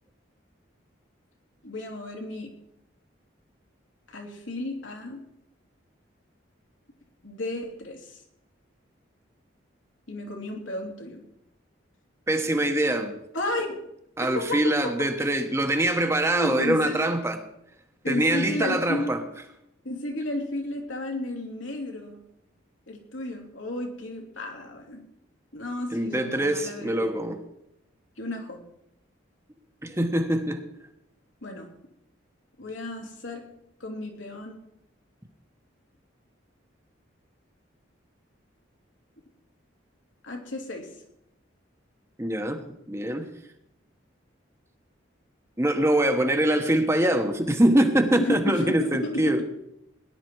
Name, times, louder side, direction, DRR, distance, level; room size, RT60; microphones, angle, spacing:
voice 1, 1.6-2.5 4.1-5.3 7.2-8.2 10.1-11.2 13.3-13.9 14.2-14.9 16.3-17.1 18.0-19.1 19.8-22.2 22.9-25.0 25.5-27.1 28.2-28.6 31.4-31.7 32.6-33.4 33.8-34.6 40.2-40.9 48.1-49.5, left 1 dB, 80° left, 1 dB, 3.0 m, -33 dB
voice 2, 12.3-13.2 14.2-17.4 18.1-19.2 25.9-27.4 29.8-30.6 42.2-43.3 45.6-49.4, right 1 dB, 15° right, 6 dB, 1.1 m, -24 dB
18.0 x 11.0 x 4.6 m, 0.80 s
head